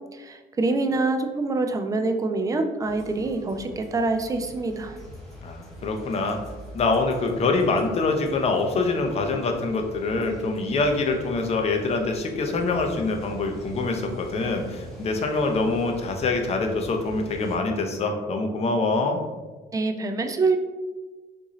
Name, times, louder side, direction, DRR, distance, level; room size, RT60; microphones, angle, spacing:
voice 1, 0.1-5.0 19.7-20.6, right 3 dB, 20° right, 6 dB, 0.3 m, -25 dB
sound 1, 2.8-17.6, right 1 dB, ahead, 1.2 m, -44 dB
voice 2, 5.4-6.4 6.7-19.2, left 3 dB, 40° left, 4 dB, 0.6 m, -25 dB
3.7 x 2.5 x 3.0 m, 1.3 s
cardioid pair, 110°, 17 cm